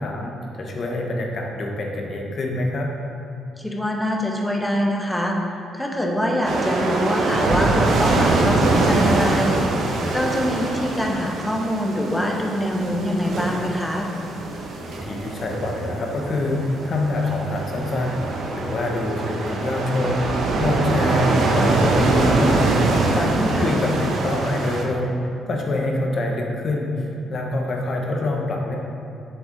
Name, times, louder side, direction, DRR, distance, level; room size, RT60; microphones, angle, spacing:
voice 1, 0.0-2.9 14.9-18.2 18.5-20.3 20.6-22.8 23.1-25.2 25.5-28.8, left 2 dB, 50° left, 0 dB, 1.3 m, -25 dB
voice 2, 3.6-5.4 5.7-14.1 23.5-23.8, equal, 5° left, 0 dB, 1.2 m, -24 dB
sound 1, 6.4-24.8, right 2 dB, 70° right, 1.2 m, -23 dB
7.8 x 7.0 x 3.9 m, 2.8 s
cardioid pair, 90°, 0 cm